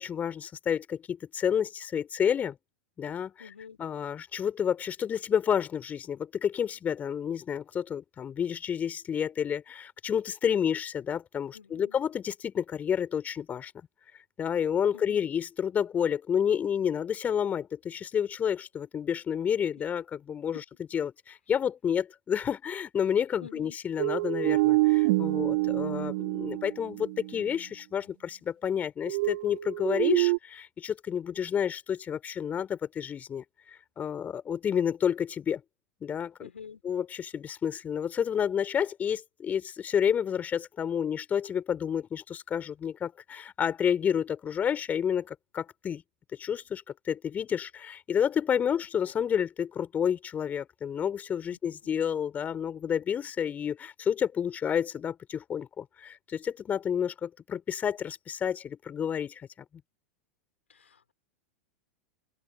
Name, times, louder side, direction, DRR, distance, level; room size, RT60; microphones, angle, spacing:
voice 1, 0.0-2.6 3.0-3.5 3.8-13.7 14.4-20.6 20.9-33.4 34.0-35.6 36.0-36.5 36.8-46.0 46.3-59.5, left 8 dB, 25° left, 3.8 m, -30 dB
voice 2, 3.4-3.8 11.5-12.0 14.9-15.3 23.4-23.7 36.4-36.8 48.7-48.8 51.5-52.0 60.7-61.1, left 6 dB, 75° left, 3.4 m, -49 dB
sound 1, 24.0-27.3 29.1-30.4, right 22 dB, 50° right, 0.5 m, -26 dB
open air
figure-of-eight pair, 90°, 7 cm